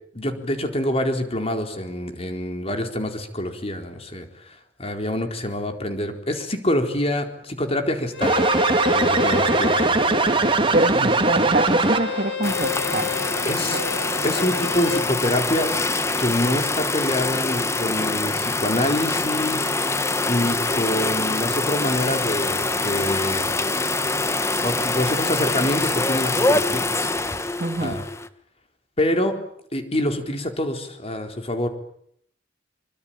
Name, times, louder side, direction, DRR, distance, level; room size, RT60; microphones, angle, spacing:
voice 1, 0.1-8.4 8.9-9.9 13.4-13.8 14.2-15.7 16.2-19.7 20.3-23.5 24.6-26.9 27.8-28.0 29.0-29.3 29.7-31.7, left 1 dB, 35° left, 6 dB, 4.1 m, -26 dB
Bowed string instrument, 8.1-15.1, left 6 dB, 90° left, 5.4 m, -31 dB
sound 1, 8.2-12.3, right 2 dB, 30° right, 2.4 m, -20 dB
voice 2, 10.7-13.1 13.6-13.9 27.6-28.0, right 2 dB, 50° right, 8 dB, 2.4 m, -25 dB
sound 2, 12.4-28.3, left 2 dB, 15° left, 1.4 m, -24 dB
25.5 x 25.0 x 8.9 m, 0.70 s
head